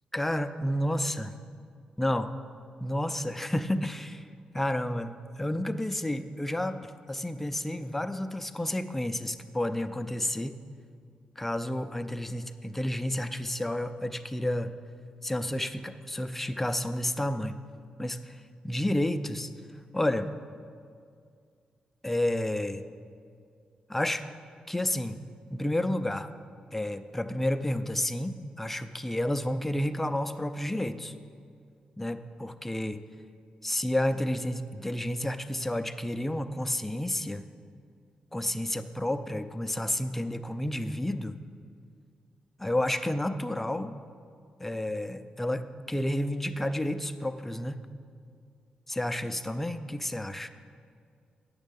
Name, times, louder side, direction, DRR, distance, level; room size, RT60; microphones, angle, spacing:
voice 1, 0.1-1.3 2.0-2.3 2.8-4.3 4.5-10.6 11.4-14.7 15.2-17.6 18.0-19.5 19.9-20.3 22.0-22.8 23.9-24.3 24.7-25.2 25.5-26.3 26.7-31.1 32.0-33.0 33.6-37.4 38.3-41.4 42.6-43.9 44.6-47.8 48.9-50.5, left 1 dB, 10° left, 9 dB, 0.5 m, -30 dB
9.7 x 7.4 x 5.3 m, 2.2 s
cardioid pair, 95°, 2 cm